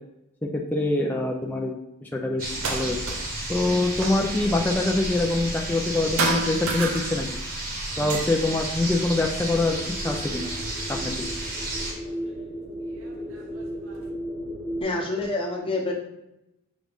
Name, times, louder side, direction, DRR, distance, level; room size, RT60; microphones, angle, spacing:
voice 1, 0.4-1.7 2.0-3.2 3.5-7.3 8.0-10.5 10.9-11.1, left 2 dB, 10° left, 0 dB, 0.3 m, -25 dB
sound 1, 2.4-11.9, right 1 dB, 40° right, 1.0 m, -32 dB
sound 2, 2.5-3.4 3.7-5.9 6.2-7.6 7.9-9.8 10.4-11.3 12.3-12.4 13.0-14.0, right 3 dB, 65° right, 0.7 m, -33 dB
sound 3, 9.2-14.8, equal, 20° right, 0.9 m, -36 dB
voice 2, 14.8-15.9, left 2 dB, 25° left, -1 dB, 0.8 m, -27 dB
6.0 x 2.6 x 3.4 m, 0.88 s
head